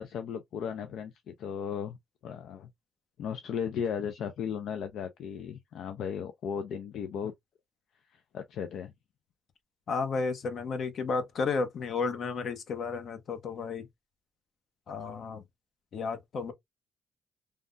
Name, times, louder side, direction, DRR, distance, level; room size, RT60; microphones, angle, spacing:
voice 1, 0.0-2.0 2.2-2.7 3.2-7.3 8.1-8.9, left 7 dB, 75° left, 0.4 m, -36 dB
voice 2, 9.9-13.9 14.9-15.4 15.9-16.5, left 4 dB, 60° left, 0.9 m, -32 dB
3.3 x 2.2 x 2.4 m
cardioid pair, 90°, 0 cm